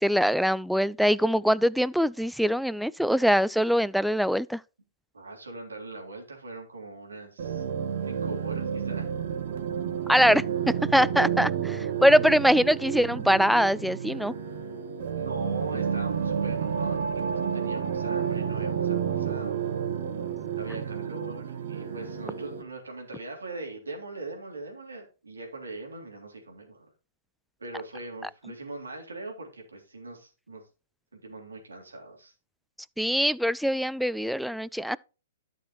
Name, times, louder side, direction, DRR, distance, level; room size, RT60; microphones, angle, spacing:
voice 1, 0.0-4.6 10.1-10.4 10.9-14.3 33.0-35.0, equal, ahead, 0.3 m, -23 dB
voice 2, 5.1-7.6 8.0-9.0 15.1-19.7 20.5-26.9 27.6-30.6 31.1-32.3, right 2 dB, 90° right, 3.4 m, -41 dB
sound 1, 7.4-22.6, right 8 dB, 60° right, 2.0 m, -30 dB
12.0 x 6.4 x 3.1 m
hypercardioid pair, 125°, 0 cm